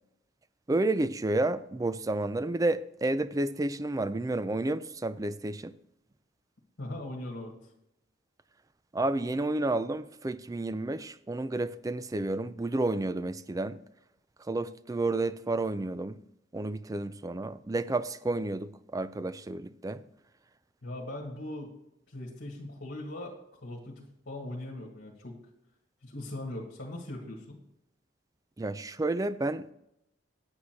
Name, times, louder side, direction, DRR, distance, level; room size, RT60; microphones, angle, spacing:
voice 1, 0.7-5.7 8.9-13.8 14.5-16.2 16.5-20.0 28.6-29.7, right 2 dB, 15° right, 14 dB, 0.4 m, -31 dB
voice 2, 6.8-7.5 20.8-21.7 22.1-25.4 26.0-27.6, left 1 dB, 60° left, -2 dB, 1.8 m, -40 dB
9.6 x 8.6 x 4.5 m, 0.83 s
head